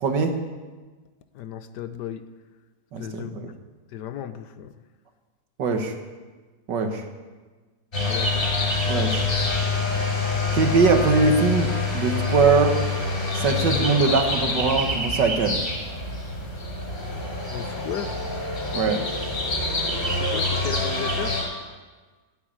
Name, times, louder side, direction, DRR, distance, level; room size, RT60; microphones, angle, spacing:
voice 1, 0.0-0.4 2.9-3.5 5.6-5.9 6.7-7.0 8.9-9.3 10.5-12.8 13.3-15.6 18.7-19.0, right 4 dB, 70° right, 6 dB, 1.9 m, -22 dB
voice 2, 1.3-2.2 3.0-3.5 3.9-4.7 8.0-8.5 17.5-18.2 20.1-21.4, left 10 dB, 70° left, 11 dB, 1.2 m, -35 dB
sound 1, 7.9-21.4, left 3 dB, 25° left, 6.4 m, -26 dB
14.0 x 8.3 x 8.8 m, 1.3 s
omnidirectional pair, 2.0 m